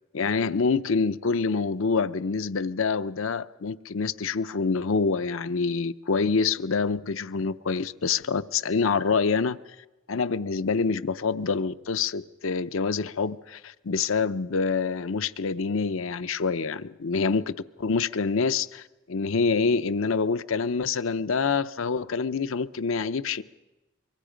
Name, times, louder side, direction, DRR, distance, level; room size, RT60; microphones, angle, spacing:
voice 1, 0.1-9.6 10.1-23.4, left 4 dB, 65° left, 0.6 m, -26 dB
25.0 x 23.5 x 5.1 m
head